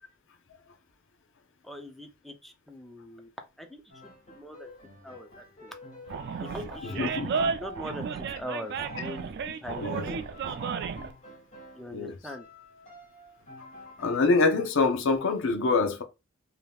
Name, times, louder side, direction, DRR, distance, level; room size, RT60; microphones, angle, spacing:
voice 1, 1.6-3.3 3.6-4.7 5.0-5.8 6.4-9.3 9.6-10.3 11.8-12.5, equal, ahead, 0.5 m, -42 dB
Piano, 3.9-12.0 12.2-14.6, left 1 dB, 40° left, 1.9 m, -48 dB
Animal, 6.1-11.1, right 5 dB, 55° right, 0.3 m, -33 dB
voice 2, 7.0-7.3 9.8-10.0 11.9-12.1 14.0-16.0, left 3 dB, 65° left, 0.6 m, -25 dB
3.4 x 2.8 x 2.3 m
head